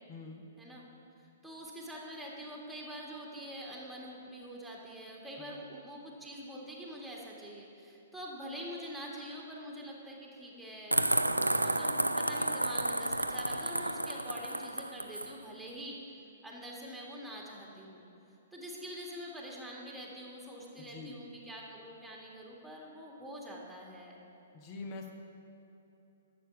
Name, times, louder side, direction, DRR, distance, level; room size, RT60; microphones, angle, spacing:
voice 1, 0.1-0.4 5.4-5.5 20.8-21.2 24.5-25.1, left 3 dB, 35° left, 4 dB, 1.3 m, -45 dB
voice 2, 1.4-11.0 11.6-16.0 16.4-18.0 18.5-24.2, equal, ahead, -3 dB, 1.9 m, -45 dB
sound 1, 10.9-15.3, right 1 dB, 90° right, 0.4 m, -31 dB
11.0 x 7.1 x 6.0 m, 3.0 s
figure-of-eight pair, 115°, 0 cm